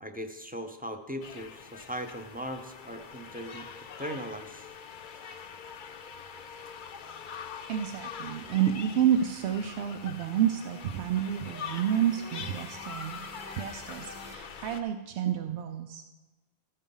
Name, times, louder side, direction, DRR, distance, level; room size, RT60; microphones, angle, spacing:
voice 1, 0.0-3.7 4.0-4.7, equal, 10° right, 5 dB, 0.6 m, -39 dB
sound 1, 1.2-14.8, left 6 dB, 55° left, 0.7 m, -44 dB
voice 2, 7.7-13.2 13.6-16.0, right 9 dB, 90° right, 6 dB, 0.9 m, -29 dB
sound 2, 8.2-14.3, right 2 dB, 40° right, 0.9 m, -52 dB
13.5 x 5.5 x 5.5 m, 1.2 s
omnidirectional pair, 1.1 m